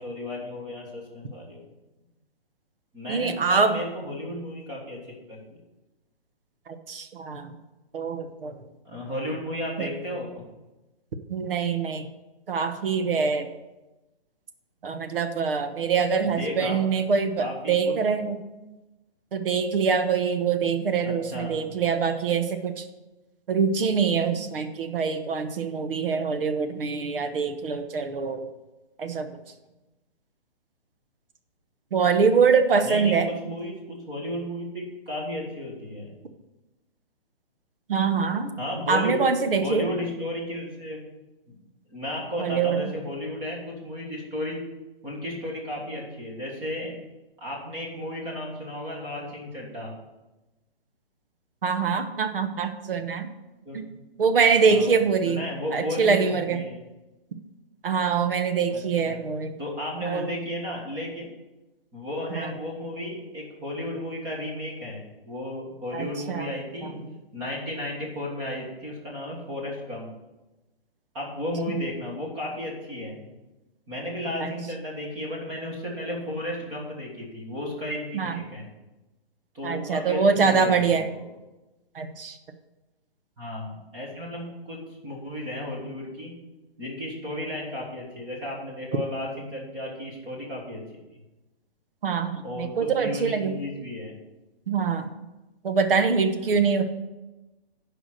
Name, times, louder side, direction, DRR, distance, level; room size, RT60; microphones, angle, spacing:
voice 1, 0.0-1.7 2.9-5.0 5.3-5.6 8.8-10.4 16.2-16.8 17.4-17.9 21.0-21.6 32.8-36.1 38.6-39.2 39.6-41.0 41.5-41.6 41.9-44.6 45.0-46.9 47.4-49.9 53.6-53.8 54.7-55.0 55.3-56.8 58.7-58.8 59.1-59.2 59.6-61.3 61.9-66.9 67.3-70.1 71.1-73.3 73.9-78.7 79.5-81.2 83.4-86.3 86.8-90.8 92.4-94.1, left 1 dB, 15° right, -3 dB, 1.5 m, -34 dB
voice 2, 3.1-3.8 6.7-7.5 7.9-8.6 9.8-9.9 11.3-12.1 12.5-13.5 14.8-18.4 19.3-22.8 23.5-28.4 29.0-29.3 31.9-33.3 37.9-38.5 38.9-39.9 42.4-42.9 51.6-53.3 53.7-53.8 54.2-55.5 55.7-56.6 57.8-59.5 60.0-60.2 62.3-62.5 65.9-66.5 66.8-66.9 71.7-71.8 74.4-74.5 78.1-78.4 79.6-81.1 81.9-82.4 92.0-93.5 94.7-95.1 95.6-96.8, right 5 dB, 60° right, 8 dB, 1.1 m, -24 dB
10.0 x 5.0 x 6.5 m, 1.0 s
hypercardioid pair, 170°, 31 cm